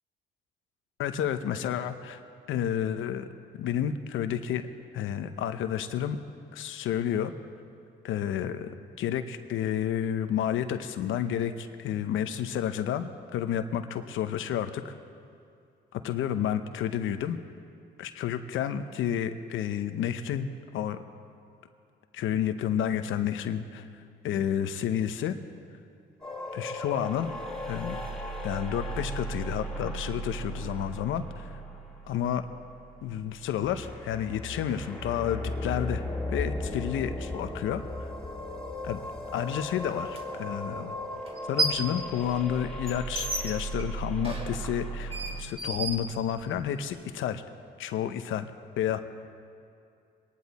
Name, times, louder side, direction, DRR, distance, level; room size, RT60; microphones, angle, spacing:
voice 1, 1.0-2.2 2.5-3.3 3.6-4.6 4.9-6.2 6.5-7.3 8.0-14.9 15.9-17.4 18.0-21.0 22.1-23.9 24.2-25.4 26.5-27.3 27.7-28.0 28.4-31.5 32.1-32.4 33.0-36.0 36.3-37.8 38.8-39.0 39.3-40.9 41.5-47.4 47.8-48.5 48.8-49.0, left 9 dB, 80° left, 9 dB, 0.9 m, -30 dB
sound 1, 26.2-45.4, equal, 5° left, 2.4 m, -37 dB
sound 2, 40.1-40.2 41.3-41.9 42.3-46.7, right 2 dB, 30° right, 2.3 m, -33 dB
24.0 x 10.5 x 4.2 m, 2.4 s
cardioid pair, 90°, 20 cm